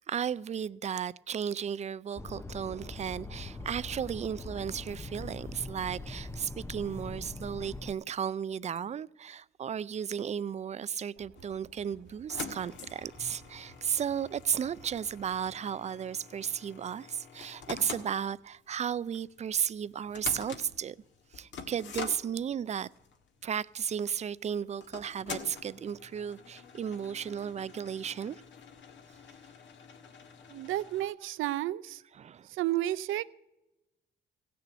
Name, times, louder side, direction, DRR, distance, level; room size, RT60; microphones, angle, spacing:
voice 1, 0.1-21.0 21.3-22.9 23.4-28.4 32.2-32.5, right 8 dB, 35° right, 0.4 m, -34 dB
sound 1, 2.2-7.9, left 2 dB, 10° left, 0.6 m, -42 dB
sound 2, 11.2-15.5, right 4 dB, 55° right, 1.3 m, -58 dB
sound 3, 11.3-31.0, left 6 dB, 70° left, 1.6 m, -47 dB
voice 2, 30.5-32.0 32.5-33.2, right 14 dB, 85° right, 0.6 m, -31 dB
16.0 x 6.8 x 8.1 m
cardioid pair, 90°, 20 cm